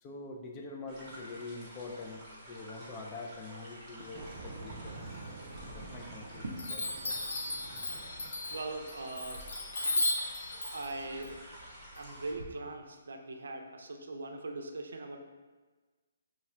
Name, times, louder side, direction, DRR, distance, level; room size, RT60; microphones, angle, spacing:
voice 1, 0.0-5.0 5.7-6.4 6.7-7.2, left 3 dB, 20° left, 1 dB, 0.3 m, -45 dB
sound 1, 0.9-12.3, right 1 dB, 10° right, 0.9 m, -50 dB
sound 2, 4.0-9.0, right 3 dB, 30° right, 0.5 m, -48 dB
Chime, 5.5-6.2 6.6-12.4, left 2 dB, 80° left, 0.7 m, -36 dB
voice 2, 8.5-9.5 10.3-10.4 10.7-11.4 11.9-15.2, right 2 dB, 80° right, 4 dB, 0.4 m, -40 dB
3.1 x 2.4 x 4.3 m, 1.3 s
hypercardioid pair, 165°, 0 cm